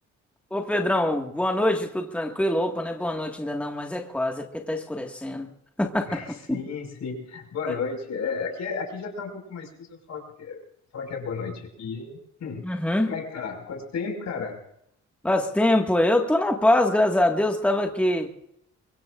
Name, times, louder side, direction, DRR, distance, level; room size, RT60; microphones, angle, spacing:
voice 1, 0.5-5.5 5.8-6.6 12.6-13.1 15.2-18.3, left 1 dB, 5° left, 2 dB, 1.8 m, -24 dB
voice 2, 6.1-10.6 10.9-12.6 13.1-14.6, left 5 dB, 65° left, 3 dB, 5.4 m, -33 dB
24.5 x 22.0 x 2.5 m, 0.74 s
cardioid pair, 90°, 30 cm